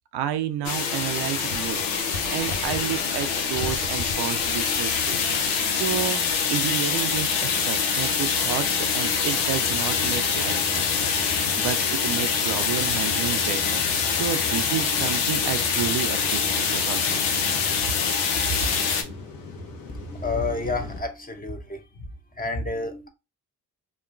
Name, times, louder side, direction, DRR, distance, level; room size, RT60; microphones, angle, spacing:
voice 1, 0.1-6.2 6.4-18.0, right 10 dB, 65° right, 0.5 m, -31 dB
sound 1, 0.6-19.0, left 6 dB, 85° left, 0.6 m, -25 dB
sound 2, 9.4-21.0, left 2 dB, 50° left, 1.0 m, -39 dB
voice 2, 19.9-21.8 22.4-23.1, left 3 dB, 20° left, 0.7 m, -29 dB
2.9 x 2.1 x 2.5 m
hypercardioid pair, 50°, 43 cm